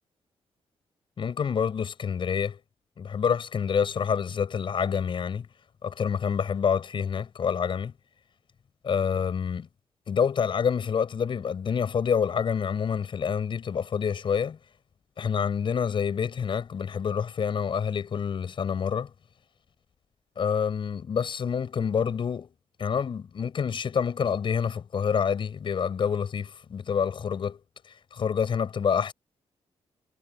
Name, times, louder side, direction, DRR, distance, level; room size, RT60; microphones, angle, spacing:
voice 1, 1.2-2.6 3.0-5.5 5.8-7.9 8.8-9.7 10.1-14.6 15.2-19.1 20.4-22.5 22.8-27.6 28.1-29.1, left 7 dB, 50° left, 7.1 m, -27 dB
wide cardioid pair, 135°, 11 cm